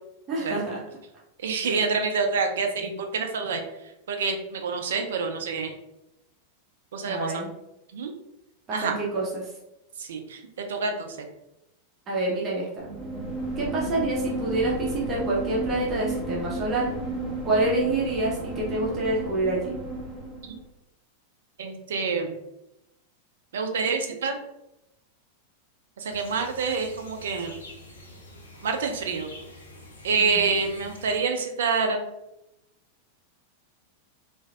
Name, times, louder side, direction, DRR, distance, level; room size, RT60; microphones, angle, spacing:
voice 1, 0.3-0.8 1.6-1.8 7.0-7.5 8.7-9.5 12.1-12.9 13.6-16.9 17.4-19.7 30.2-30.4, right 2 dB, 30° right, -4 dB, 0.7 m, -27 dB
voice 2, 1.4-3.6 4.1-5.7 6.9-7.5 7.9-8.1 8.7-9.0 10.0-11.2 21.6-22.3 23.5-24.4 26.0-27.5 28.6-29.3 30.0-32.0, right 5 dB, 60° right, 5 dB, 0.4 m, -27 dB
sound 1, 12.8-20.6, right 2 dB, 5° left, 0.9 m, -32 dB
sound 2, 26.1-31.2, left 1 dB, 70° left, 0.6 m, -46 dB
3.2 x 2.5 x 2.3 m, 0.87 s
figure-of-eight pair, 90°, 0 cm